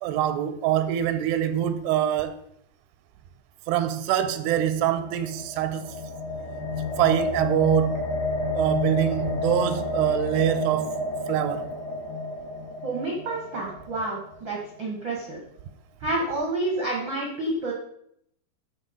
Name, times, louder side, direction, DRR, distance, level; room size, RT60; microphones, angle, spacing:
voice 1, 0.0-2.3 3.7-5.9 7.0-8.0 8.6-11.0 11.3-11.7, right 11 dB, 85° right, 2.7 m, -24 dB
sound 1, 4.4-14.6, left 2 dB, 65° left, 3.1 m, -30 dB
voice 2, 12.8-15.4 16.0-17.7, right 2 dB, 70° right, 1.1 m, -29 dB
13.0 x 4.4 x 5.2 m
omnidirectional pair, 4.8 m